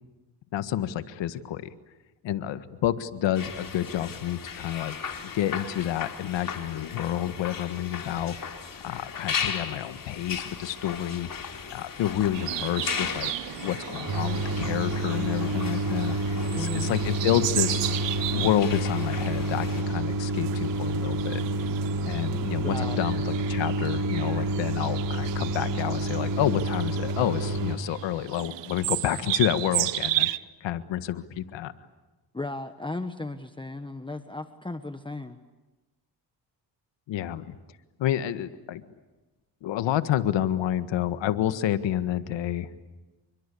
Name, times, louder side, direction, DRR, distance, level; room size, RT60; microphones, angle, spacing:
voice 1, 0.5-1.7 2.2-5.0 5.3-8.4 8.8-11.3 11.7-13.3 13.6-16.2 16.5-18.0 18.3-21.4 22.1-30.3 30.6-31.7 37.1-37.6 38.0-38.8 39.6-42.7, left 11 dB, 80° left, 11 dB, 1.7 m, -29 dB
sound 1, 3.3-19.8, left 6 dB, 50° left, 4.1 m, -37 dB
sound 2, 12.3-30.4, right 15 dB, 75° right, 1.0 m, -34 dB
sound 3, 14.1-27.8, right 1 dB, 50° right, 3.2 m, -29 dB
voice 2, 16.5-16.9 22.6-23.0 32.3-35.4, left 2 dB, 10° left, 8 dB, 1.3 m, -35 dB
28.5 x 24.0 x 8.5 m, 1.2 s
cardioid pair, 85°, 44 cm